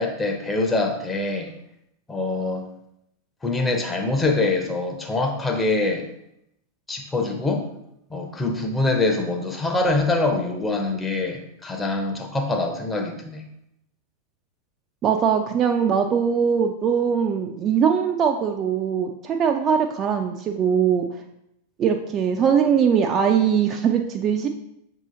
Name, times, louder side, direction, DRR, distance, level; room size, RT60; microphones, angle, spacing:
voice 1, 0.0-1.5 2.1-2.7 3.4-6.0 6.9-7.7 8.1-13.4, left 2 dB, 10° left, 2 dB, 0.6 m, -24 dB
voice 2, 15.0-21.0 21.8-24.5, right 7 dB, 30° right, 4 dB, 0.3 m, -21 dB
5.9 x 2.8 x 2.6 m, 0.79 s
figure-of-eight pair, 90°, 0 cm